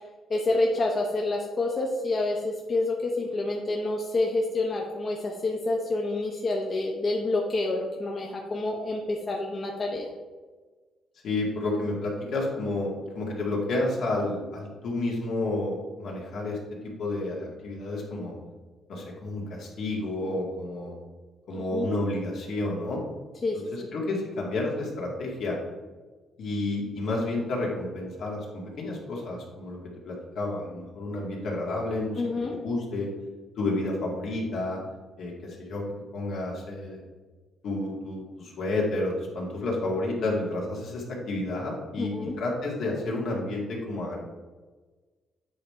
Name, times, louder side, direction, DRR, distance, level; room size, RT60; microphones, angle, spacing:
voice 1, 0.3-10.1 21.7-21.9 23.4-23.6 32.2-32.5 42.0-42.3, left 2 dB, 40° left, -1 dB, 1.0 m, -28 dB
voice 2, 11.2-16.6 16.8-18.3 18.9-20.9 21.5-23.0 23.7-25.6 26.4-29.8 30.0-32.2 32.5-33.1 33.6-34.8 35.2-35.8 36.1-37.0 37.6-44.2, left 2 dB, 70° left, -2 dB, 1.9 m, -30 dB
8.5 x 3.6 x 4.4 m, 1.3 s
cardioid pair, 90°, 0 cm